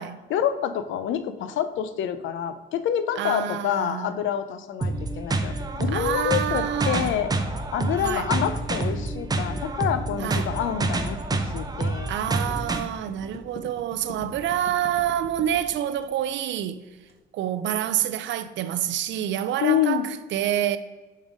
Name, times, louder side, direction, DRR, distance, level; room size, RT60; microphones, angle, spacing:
voice 1, 0.3-5.5 5.8-7.3 7.7-11.2 11.4-12.1 19.6-20.0, left 9 dB, 75° left, 0.5 m, -27 dB
voice 2, 3.2-4.1 5.9-7.1 8.0-8.3 10.2-10.6 12.1-16.8 17.3-20.8, right 11 dB, 70° right, 0.4 m, -27 dB
sound 1, 4.8-12.8, right 2 dB, 20° right, 0.6 m, -28 dB
sound 2, 5.6-17.1, left 3 dB, 50° left, 1.0 m, -45 dB
5.4 x 5.1 x 3.5 m
cardioid pair, 90°, 20 cm